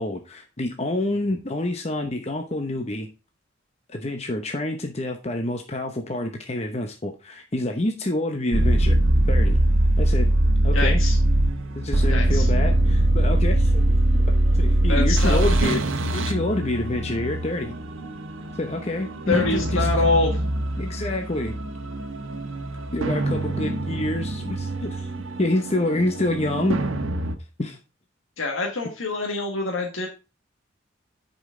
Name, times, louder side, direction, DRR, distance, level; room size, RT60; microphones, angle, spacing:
voice 1, 0.0-3.1 3.9-9.0 9.3-9.6 10.0-10.3 10.6-11.0 11.8-14.2 14.5-17.7 18.6-19.9 20.8-21.6 22.9-25.1 25.4-26.8 27.6-27.8, left 1 dB, 30° left, 4 dB, 0.9 m, -27 dB
sound 1, 8.5-27.4, right 1 dB, 90° right, 1.2 m, -22 dB
voice 2, 10.7-11.2 12.1-12.5 14.9-15.4 19.3-20.4 28.4-30.1, left 3 dB, 90° left, 0 dB, 1.7 m, -25 dB
9.9 x 5.3 x 3.8 m, 0.30 s
head